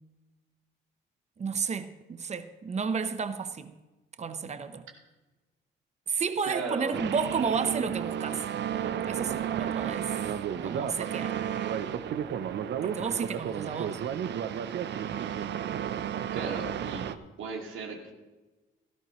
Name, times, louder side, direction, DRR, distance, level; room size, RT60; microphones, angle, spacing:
voice 1, 1.4-3.8 4.2-4.8 6.1-8.4 9.1-10.1 10.6-11.4 12.8-14.0, right 5 dB, 35° right, 0.9 m, -32 dB
voice 2, 6.4-7.0 16.3-17.0 17.4-18.1, right 4 dB, 80° right, 2.3 m, -35 dB
sound 1, 6.9-17.1, right 9 dB, 65° right, 0.7 m, -32 dB
17.0 x 13.0 x 3.1 m
cardioid pair, 90°, 20 cm